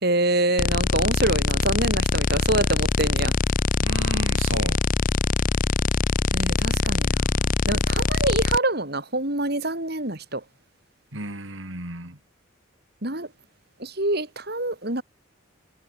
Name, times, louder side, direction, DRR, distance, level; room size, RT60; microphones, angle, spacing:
voice 1, 0.0-3.3 6.3-10.4 13.0-13.3 13.8-15.0, right 2 dB, 50° right, 3.9 m, -26 dB
sound 1, 0.6-8.6, left 4 dB, 40° left, 0.5 m, -23 dB
voice 2, 3.8-4.8 6.6-6.9 11.1-12.2, right 2 dB, 70° right, 5.4 m, -33 dB
head